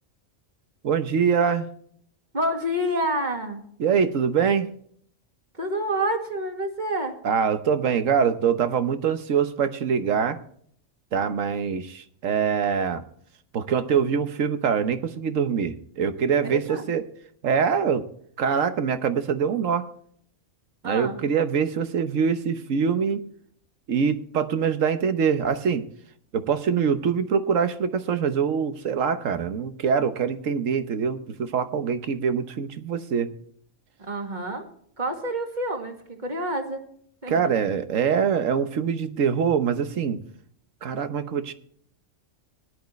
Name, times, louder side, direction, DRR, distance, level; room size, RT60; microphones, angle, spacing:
voice 1, 0.8-1.7 3.8-4.7 7.2-10.4 11.1-13.0 13.5-17.0 17.4-18.0 18.4-19.9 20.8-23.2 23.9-25.8 26.3-33.3 37.3-40.2 40.8-41.5, right 6 dB, 80° right, 10 dB, 1.4 m, -24 dB
voice 2, 2.3-3.6 5.5-7.1 16.4-16.9 20.8-21.2 34.0-34.6 35.0-36.8 37.2-37.5, right 1 dB, 35° right, 3 dB, 2.2 m, -28 dB
17.5 x 10.5 x 3.2 m, 0.63 s
omnidirectional pair, 1.3 m